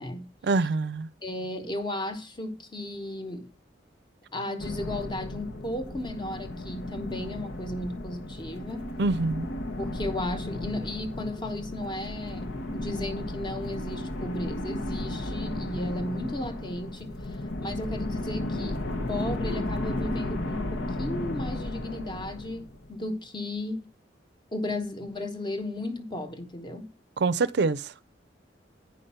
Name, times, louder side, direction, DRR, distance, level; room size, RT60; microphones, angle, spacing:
voice 1, 0.4-1.1 9.0-9.5 27.2-27.9, right 3 dB, 65° right, 0.5 m, -25 dB
voice 2, 1.2-3.5 4.3-8.9 9.8-23.9 24.5-26.9, left 1 dB, 25° left, 1.0 m, -35 dB
sound 1, 4.6-23.0, left 1 dB, 85° left, 1.1 m, -34 dB
9.4 x 5.2 x 5.6 m
head